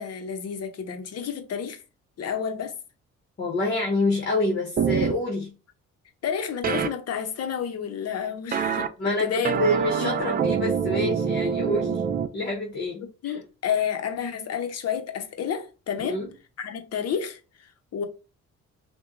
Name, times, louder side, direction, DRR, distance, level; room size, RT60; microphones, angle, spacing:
voice 1, 0.0-1.8 2.2-2.7 6.2-9.6 9.9-10.4 13.2-16.2 16.6-18.0, left 7 dB, 55° left, 0.7 m, -30 dB
voice 2, 3.4-5.5 9.0-12.0 12.3-13.3 16.0-16.3, left 1 dB, 35° left, 1.0 m, -27 dB
sound 1, 4.8-5.1 6.6-6.9 8.5-8.9 9.4-12.3, right 7 dB, 30° right, 0.4 m, -25 dB
5.8 x 2.2 x 2.5 m
cardioid pair, 90°, 30 cm